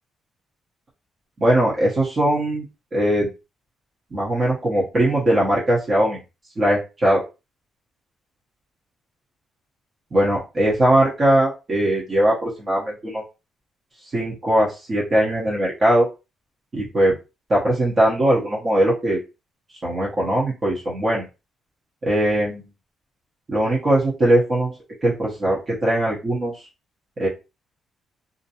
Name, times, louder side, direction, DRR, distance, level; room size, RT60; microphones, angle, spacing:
voice 1, 1.4-2.6 2.9-3.3 4.1-6.2 6.6-7.2 10.1-13.2 14.1-16.1 16.7-17.1 17.5-19.2 19.8-21.2 22.0-22.6 23.5-24.7 25.0-26.5 27.2-27.3, right 1 dB, 40° right, -6 dB, 0.9 m, -20 dB
2.5 x 2.1 x 2.8 m, 0.28 s
cardioid pair, 90°, 0 cm